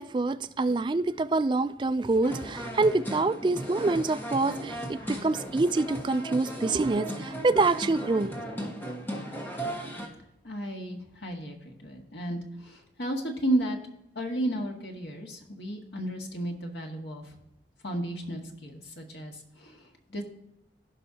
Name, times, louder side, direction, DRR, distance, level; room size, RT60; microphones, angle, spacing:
voice 1, 0.0-8.4, right 3 dB, 25° right, 0.3 m, -26 dB
sound 1, 2.2-10.1, right 1 dB, 10° left, 1.4 m, -36 dB
voice 2, 10.4-13.8 14.2-17.2 17.8-19.8 20.1-20.2, right 1 dB, 70° left, 1.7 m, -33 dB
16.0 x 5.5 x 2.8 m
head